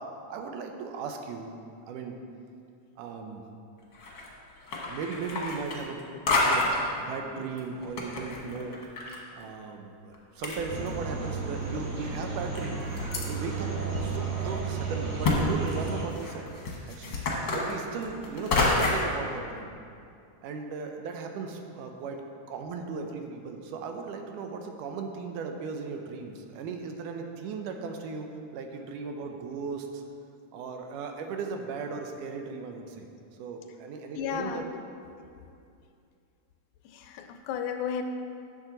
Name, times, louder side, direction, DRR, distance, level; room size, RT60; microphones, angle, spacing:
voice 1, 0.0-1.6 1.9-2.2 3.0-3.4 4.9-8.8 9.3-12.8 13.3-13.7 14.0-16.5 16.9-17.2 17.5-19.7 20.4-30.0 30.5-33.1 33.4-34.6, right 5 dB, 85° right, 4 dB, 2.3 m, -37 dB
sound 1, 3.9-4.3 4.6-6.0 6.3-6.9 7.6-9.2 9.4-9.5 10.1-10.2 10.4-11.2 11.8-11.9 12.6-13.3 13.9-14.0 14.4-14.5 15.2-15.4 15.7-19.1, left 3 dB, 50° left, 1.4 m, -28 dB
sound 2, 10.7-16.0, right 5 dB, 55° right, 0.9 m, -33 dB
voice 2, 34.2-34.7 36.8-38.0, left 7 dB, 80° left, 7 dB, 1.9 m, -33 dB
10.5 x 7.3 x 3.9 m, 2.5 s
omnidirectional pair, 3.6 m